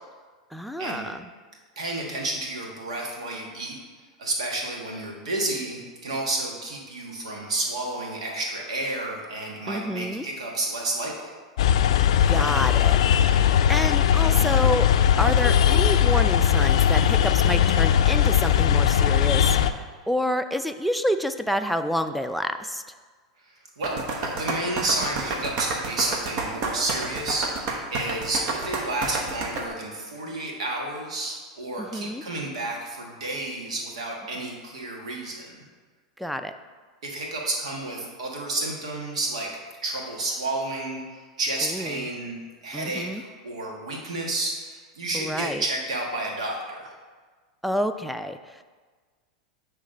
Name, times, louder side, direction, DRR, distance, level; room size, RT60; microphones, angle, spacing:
voice 1, 0.5-1.3 9.7-10.3 12.3-13.0 13.2-13.4 13.7-14.9 15.2-22.8 31.8-32.2 36.2-36.5 41.6-42.1 42.7-43.2 45.1-45.6 47.6-48.6, equal, ahead, 9 dB, 0.4 m, -28 dB
voice 2, 1.8-3.7 4.2-11.3 23.8-35.6 37.0-39.5 39.8-46.9, right 2 dB, 80° right, -1 dB, 1.5 m, -31 dB
sound 1, 11.6-19.7, left 9 dB, 75° left, 0.4 m, -19 dB
sound 2, 23.8-29.6, right 3 dB, 55° right, 1.1 m, -30 dB
8.4 x 3.2 x 5.1 m, 1.4 s
hypercardioid pair, 100°, 3 cm